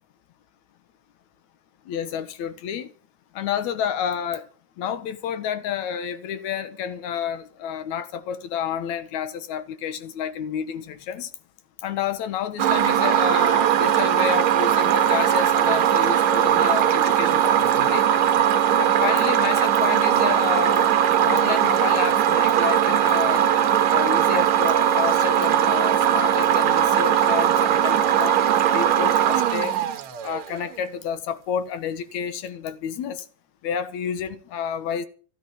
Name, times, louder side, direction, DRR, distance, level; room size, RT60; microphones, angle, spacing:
voice 1, 1.9-2.9 3.3-4.5 4.8-11.3 11.8-18.1 18.8-20.9 21.2-23.5 23.9-28.4 28.7-29.8 30.2-33.2 33.6-35.1, left 8 dB, 65° left, 2.1 m, -30 dB
sound 1, 12.6-30.6, right 10 dB, 65° right, 2.2 m, -20 dB
16.0 x 8.5 x 8.5 m
omnidirectional pair, 4.1 m